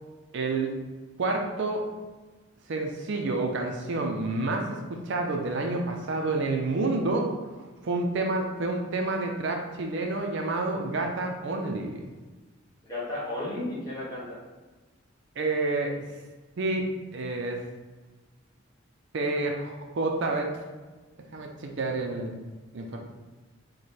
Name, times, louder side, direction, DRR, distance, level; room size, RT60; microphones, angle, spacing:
voice 1, 0.3-0.7 1.2-1.8 2.7-7.3 7.8-12.1 15.4-16.0 16.6-17.6 19.1-20.5 21.3-22.4 22.7-23.0, right 2 dB, 60° right, 2 dB, 0.5 m, -29 dB
voice 2, 12.8-14.4, left 1 dB, 20° left, -7 dB, 1.4 m, -33 dB
4.8 x 2.2 x 4.1 m, 1.2 s
head